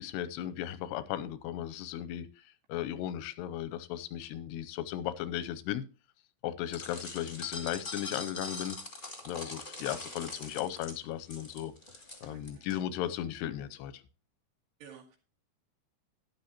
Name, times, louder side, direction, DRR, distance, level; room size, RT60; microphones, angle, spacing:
voice 1, 0.0-2.4 2.7-5.8 6.4-8.8 9.3-11.7 12.2-14.0, left 12 dB, 90° left, 2.8 m, -36 dB
sound 1, 6.7-12.7, left 2 dB, 20° left, 1.5 m, -43 dB
voice 2, 12.2-12.7 14.8-15.2, right 7 dB, 80° right, 4.3 m, -52 dB
12.0 x 10.5 x 2.9 m
omnidirectional pair, 4.7 m